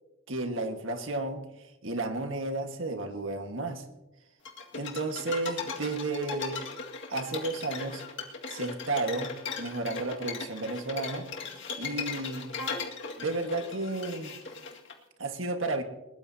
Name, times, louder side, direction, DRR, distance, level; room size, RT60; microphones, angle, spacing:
voice 1, 0.3-1.4 1.8-3.8 4.7-6.6 7.1-8.0 8.5-11.3 11.8-12.6 13.2-14.3 15.2-15.8, right 2 dB, 65° right, 5 dB, 1.6 m, -32 dB
sound 1, 4.5-14.9, left 5 dB, 55° left, 2.0 m, -38 dB
21.0 x 20.5 x 2.8 m, 1.0 s
head